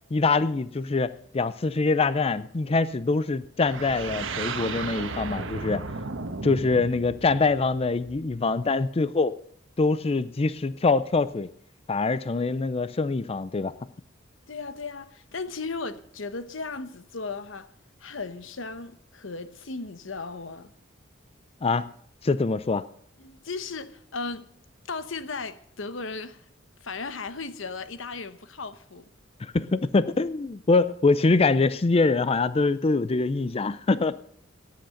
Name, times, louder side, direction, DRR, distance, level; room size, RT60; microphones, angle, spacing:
voice 1, 0.1-5.8 6.4-9.3 9.8-11.5 11.9-13.7 21.6-21.9 22.2-22.8 29.4-34.2, left 3 dB, 30° left, 0.5 m, -24 dB
sound 1, 3.6-8.4, right 3 dB, 85° right, 1.3 m, -35 dB
voice 2, 14.5-17.7 18.0-20.7 23.2-24.5 24.8-26.4 26.8-29.1, left 4 dB, 80° left, 1.0 m, -36 dB
14.5 x 10.5 x 6.5 m
head